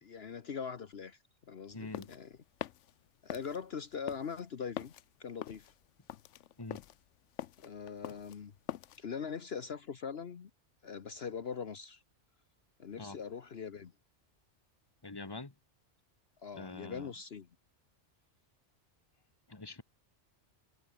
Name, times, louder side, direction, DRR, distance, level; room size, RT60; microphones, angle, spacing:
voice 1, 0.0-1.2 1.5-2.3 3.2-4.9 5.2-5.7 7.6-8.5 9.0-10.5 10.8-12.0 12.8-13.9 16.4-17.5, left 6 dB, 60° left, 1.3 m, -42 dB
sound 1, 1.7-9.0, left 12 dB, 80° left, 1.0 m, -45 dB
voice 2, 1.7-2.1 6.6-6.8 13.0-13.2 15.0-15.5 16.5-17.1 19.5-19.8, left 3 dB, 20° left, 1.7 m, -44 dB
omnidirectional pair, 1.2 m